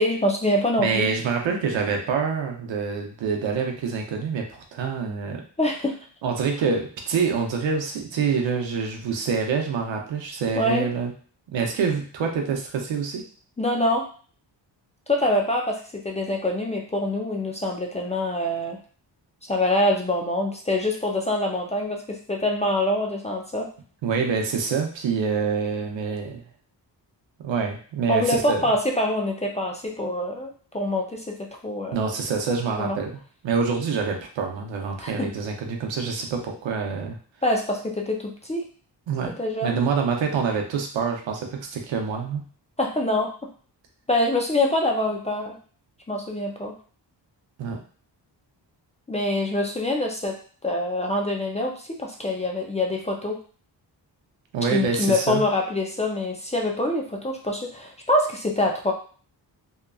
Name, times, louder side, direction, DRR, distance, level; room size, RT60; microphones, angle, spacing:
voice 1, 0.0-1.1 5.6-5.9 10.6-10.9 13.6-14.1 15.1-18.8 19.5-23.7 28.1-32.1 32.8-33.0 35.0-35.3 37.4-38.6 39.4-39.8 42.8-43.3 44.1-45.6 46.1-46.7 49.1-53.4 54.7-58.9, left 1 dB, 15° left, 0 dB, 0.3 m, -25 dB
voice 2, 0.8-5.4 6.2-11.1 11.5-13.2 24.0-26.4 27.4-28.6 31.9-33.1 33.4-37.2 39.1-42.4 47.6-47.8 54.5-55.4, right 5 dB, 85° right, 2 dB, 0.7 m, -26 dB
2.9 x 2.3 x 2.3 m, 0.43 s
cardioid pair, 95°, 44 cm